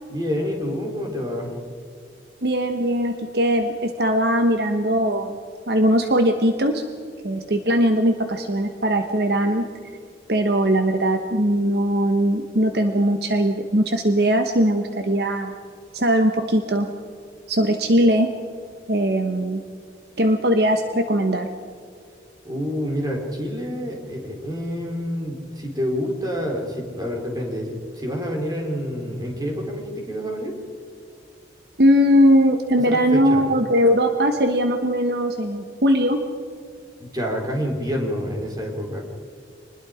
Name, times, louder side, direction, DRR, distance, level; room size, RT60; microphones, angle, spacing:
voice 1, 0.1-1.5 22.4-30.5 32.9-33.4 37.0-39.0, equal, 20° right, 0 dB, 3.8 m, -28 dB
voice 2, 2.4-5.4 5.7-6.8 7.2-9.6 10.3-15.5 15.9-16.9 17.5-18.3 18.9-19.6 20.2-21.5 31.8-36.2, equal, 60° right, 6 dB, 1.2 m, -20 dB
25.5 x 20.5 x 5.1 m, 2.3 s
head